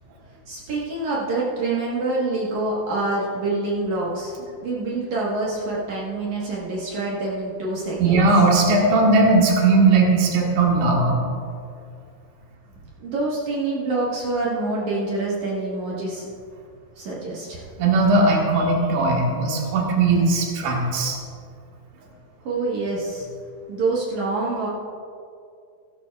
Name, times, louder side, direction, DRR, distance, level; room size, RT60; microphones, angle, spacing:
voice 1, 0.5-4.3 4.6-8.2 13.0-16.3 17.0-17.6 22.4-23.3 23.7-24.7, right 2 dB, 60° right, -5 dB, 2.1 m, -26 dB
voice 2, 8.0-11.1 17.8-21.2, right 3 dB, 85° right, -2 dB, 3.7 m, -18 dB
15.5 x 13.0 x 2.4 m, 2.4 s
omnidirectional pair, 5.1 m